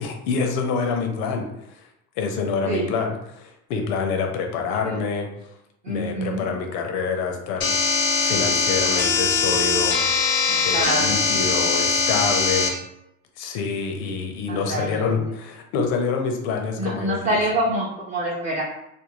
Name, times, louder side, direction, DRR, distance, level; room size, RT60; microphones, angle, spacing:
voice 1, 0.0-1.9 2.2-5.5 5.9-7.8 8.2-10.0 10.6-12.8 13.4-17.4, left 5 dB, 80° left, 3 dB, 0.6 m, -26 dB
voice 2, 5.8-6.5 10.5-11.6 14.5-15.1 16.8-18.6, right 1 dB, 20° right, -5 dB, 0.5 m, -26 dB
sound 1, 7.6-12.7, left 5 dB, 35° left, 0.4 m, -21 dB
2.5 x 2.3 x 2.9 m, 0.81 s
cardioid pair, 140°, 35 cm